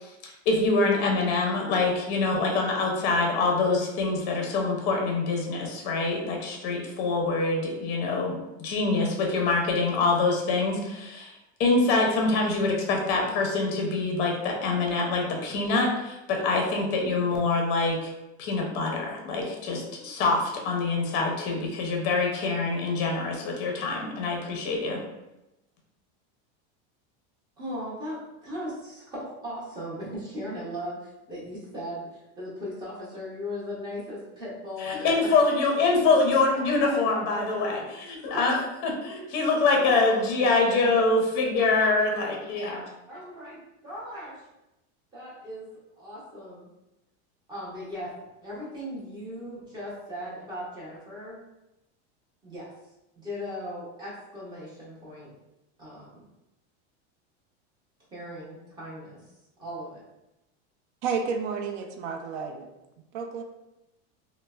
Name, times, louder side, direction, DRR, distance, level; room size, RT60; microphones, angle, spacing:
voice 1, 0.2-11.3 11.6-18.1 18.4-25.0 34.8-38.5 38.8-42.8, left 3 dB, 35° left, 1 dB, 0.5 m, -25 dB
voice 2, 27.6-35.3 36.8-37.8 38.3-38.6 39.8-40.5 40.9-41.0 43.1-44.4 45.1-45.7 46.0-46.7 47.5-48.1 48.4-51.4 52.4-52.7 53.2-55.3 55.8-56.2 58.1-59.3 59.6-60.0, equal, 15° right, -6 dB, 0.6 m, -38 dB
voice 3, 61.0-62.7 63.1-63.4, right 5 dB, 85° right, 4 dB, 0.5 m, -31 dB
3.1 x 2.0 x 2.2 m, 0.93 s
supercardioid pair, 170°, 33 cm